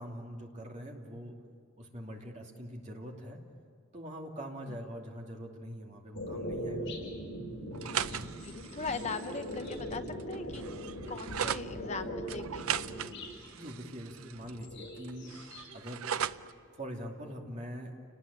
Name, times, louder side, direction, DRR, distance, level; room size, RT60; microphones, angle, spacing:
voice 1, 0.0-1.4 1.8-3.4 3.9-6.9 13.5-15.4 15.7-16.1 16.7-17.9, equal, 35° right, 0 dB, 2.8 m, -43 dB
sound 1, 6.1-13.4 14.3-15.7 15.9-16.9, equal, 60° left, 6.4 m, -41 dB
sound 2, 7.7-11.7 12.3-14.7 15.0-16.5, right 9 dB, 80° right, 0.5 m, -38 dB
voice 2, 8.4-10.6 11.1-12.7, left 4 dB, 30° left, 8 dB, 0.8 m, -40 dB
29.0 x 19.0 x 8.8 m, 2.1 s
head